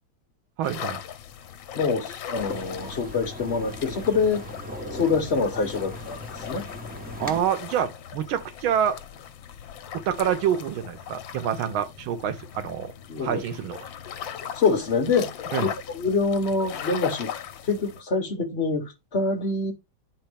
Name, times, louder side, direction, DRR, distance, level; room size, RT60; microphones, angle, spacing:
sound 1, 0.6-18.0, left 9 dB, 75° left, 1.4 m, -38 dB
voice 1, 0.6-1.0 7.2-9.0 9.9-12.9 13.2-13.9 15.5-15.6, right 9 dB, 80° right, 1.6 m, -27 dB
voice 2, 1.7-4.4 4.9-6.7 13.1-13.4 14.5-15.3 15.6-15.7 15.9-19.7, left 4 dB, 40° left, 1.0 m, -25 dB
sound 2, 2.4-7.4, left 1 dB, 10° right, 0.5 m, -39 dB
9.2 x 4.4 x 3.4 m
omnidirectional pair, 2.2 m